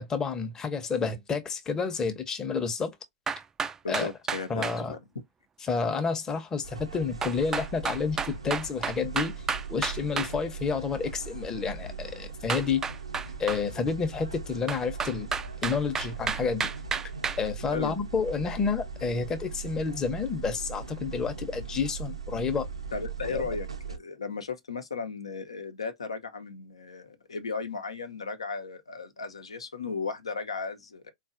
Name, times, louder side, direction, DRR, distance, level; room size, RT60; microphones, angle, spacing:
voice 1, 0.0-3.0 3.9-4.1 4.5-5.0 5.6-12.9 13.4-15.3 15.6-16.7 17.4-22.7 23.3-23.4, left 5 dB, 20° left, 0.8 m, -30 dB
sound 1, 3.3-4.8 7.2-10.3 12.5-13.6 14.7-17.4, right 6 dB, 15° right, 0.3 m, -31 dB
voice 2, 3.8-5.0 17.7-18.0 22.9-31.1, left 4 dB, 80° left, 0.8 m, -35 dB
sound 2, 6.6-24.0, right 5 dB, 90° right, 0.7 m, -39 dB
4.0 x 2.4 x 2.5 m
figure-of-eight pair, 105°, 3 cm